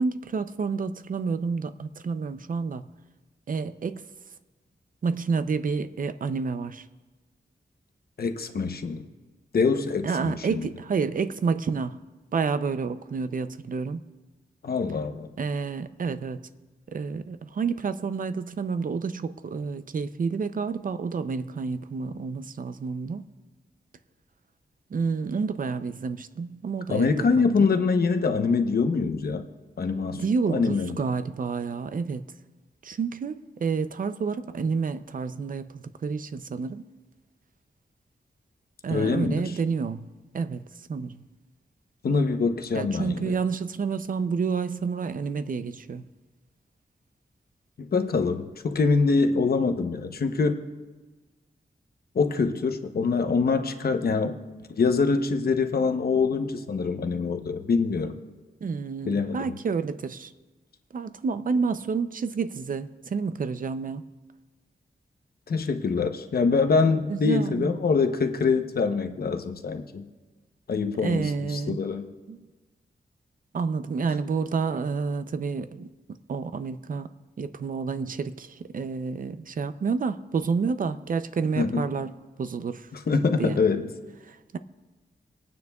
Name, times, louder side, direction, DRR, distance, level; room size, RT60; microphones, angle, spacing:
voice 1, 0.0-2.8 3.5-4.0 5.0-6.8 10.0-12.0 12.3-14.0 15.4-16.5 16.9-23.2 24.9-27.5 30.1-32.3 32.8-36.8 38.8-40.1 40.3-41.2 42.7-46.0 58.6-60.3 60.9-64.0 67.1-67.8 71.0-71.8 72.3-72.5 73.5-75.9 76.3-77.1 77.4-82.1 82.4-82.9 83.4-83.6 84.2-84.6, right 5 dB, 50° right, 0.5 m, -29 dB
voice 2, 8.2-9.1 9.5-10.6 14.6-15.3 26.9-29.4 29.8-31.0 38.9-39.4 42.0-43.3 47.8-50.6 52.1-54.4 54.8-58.1 59.1-59.4 65.5-70.1 70.7-72.1 81.6-81.8 83.1-83.9, left 4 dB, 60° left, 0.8 m, -24 dB
27.5 x 9.3 x 2.3 m
wide cardioid pair, 115°, 18 cm